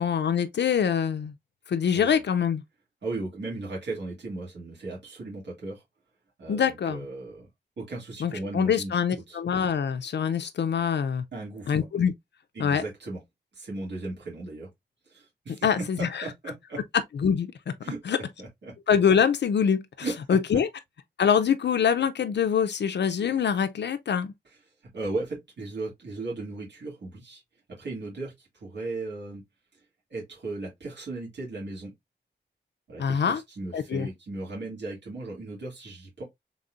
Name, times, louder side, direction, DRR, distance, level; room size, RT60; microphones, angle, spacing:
voice 1, 0.0-1.3 1.7-2.6 6.5-7.0 8.2-11.2 11.7-12.1 12.6-12.8 15.6-16.2 17.2-17.7 18.1-18.2 18.9-20.7 21.2-24.3 33.0-33.4 33.7-34.1, left 7 dB, 75° left, 0.5 m, -24 dB
voice 2, 1.9-2.2 3.0-5.8 6.4-7.5 7.8-9.0 9.3-9.4 11.3-11.8 12.5-13.2 13.5-14.7 15.1-15.7 16.0-16.8 17.8-18.0 18.4-18.7 20.0-20.1 24.9-27.4 27.8-29.4 30.1-31.9 32.9-36.2, right 2 dB, 80° right, 2.3 m, -36 dB
4.0 x 3.6 x 2.4 m
wide cardioid pair, 80°, 18 cm